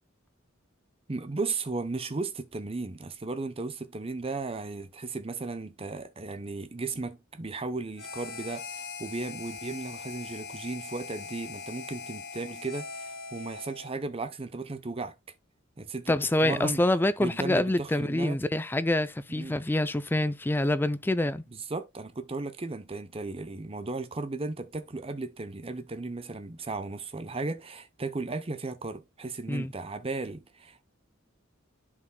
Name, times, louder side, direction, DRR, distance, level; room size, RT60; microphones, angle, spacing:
voice 1, 1.1-15.1 15.8-16.1 16.4-16.8 17.2-18.4 19.3-19.6 21.5-30.8, right 3 dB, 30° right, 0.7 m, -35 dB
Harmonica, 8.0-14.0, left 5 dB, 50° left, 1.8 m, -41 dB
voice 2, 16.1-21.4 29.5-29.7, left 1 dB, 10° left, 0.4 m, -26 dB
11.5 x 5.0 x 2.2 m
head